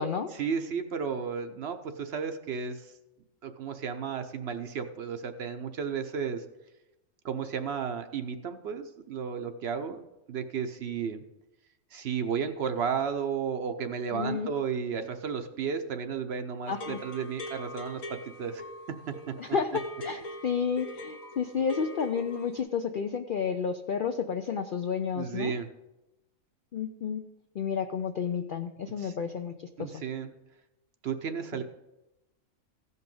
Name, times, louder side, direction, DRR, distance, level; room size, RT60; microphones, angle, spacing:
voice 1, 0.4-2.9 3.4-6.4 7.2-10.0 10.3-11.2 11.9-18.6 18.9-19.4 25.1-25.7 29.0-29.1 29.8-30.3 31.0-31.6, right 6 dB, 60° right, 8 dB, 0.8 m, -33 dB
voice 2, 14.1-14.5 16.7-17.0 19.4-25.5 26.7-27.2 27.6-29.5 29.8-29.9 31.5-31.6, left 6 dB, 65° left, 7 dB, 0.5 m, -31 dB
sound 1, 16.7-22.6, left 1 dB, 85° left, 1.8 m, -42 dB
15.5 x 5.5 x 5.3 m, 0.97 s
omnidirectional pair, 1.4 m